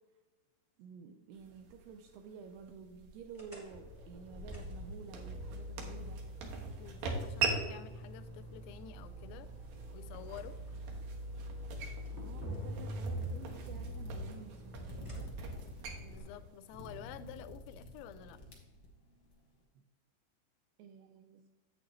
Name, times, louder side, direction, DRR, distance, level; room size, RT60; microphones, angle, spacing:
voice 1, 0.8-6.2 12.1-15.3 19.8-19.9 20.8-21.4, right 6 dB, 85° right, 5 dB, 2.3 m, -51 dB
sound 1, 1.3-17.4, right 4 dB, 70° right, 2.4 m, -43 dB
sound 2, 3.3-16.2, equal, 50° right, 0.5 m, -45 dB
voice 2, 6.8-9.5 9.9-10.6 16.0-18.4, left 10 dB, 85° left, 12 dB, 2.8 m, -50 dB
sound 3, 13.2-19.3, equal, 65° left, 1.2 m, -49 dB
8.7 x 8.2 x 3.0 m, 1.2 s
omnidirectional pair, 5.2 m